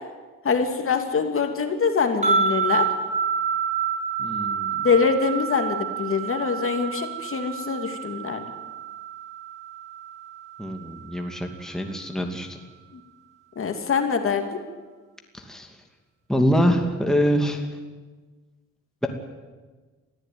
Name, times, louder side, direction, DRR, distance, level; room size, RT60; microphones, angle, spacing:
voice 1, 0.4-2.9 4.8-8.4 13.6-14.6, left 5 dB, 45° left, 5 dB, 2.8 m, -24 dB
sound 1, 2.2-11.5, right 6 dB, 25° right, 6.9 m, -28 dB
voice 2, 4.2-4.7 10.6-12.6 15.3-15.7 16.3-17.7, equal, ahead, 3 dB, 2.5 m, -24 dB
22.5 x 15.0 x 9.5 m, 1.3 s
cardioid pair, 90°, 30 cm